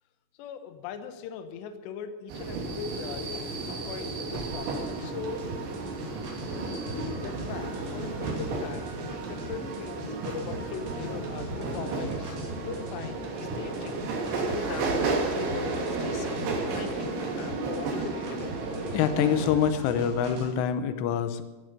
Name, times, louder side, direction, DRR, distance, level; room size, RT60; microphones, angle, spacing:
voice 1, 0.4-5.5 6.9-12.4 12.7-13.2 13.5-14.1 14.3-16.4 16.7-18.5, left 7 dB, 75° left, 8 dB, 3.0 m, -40 dB
sound 1, 2.3-19.5, right 3 dB, 75° right, 4.9 m, -33 dB
sound 2, 4.5-20.5, right 1 dB, 50° right, 4.0 m, -39 dB
voice 2, 18.9-21.4, left 8 dB, 90° left, 10 dB, 3.5 m, -25 dB
16.0 x 11.0 x 6.7 m, 1.2 s
omnidirectional pair, 5.5 m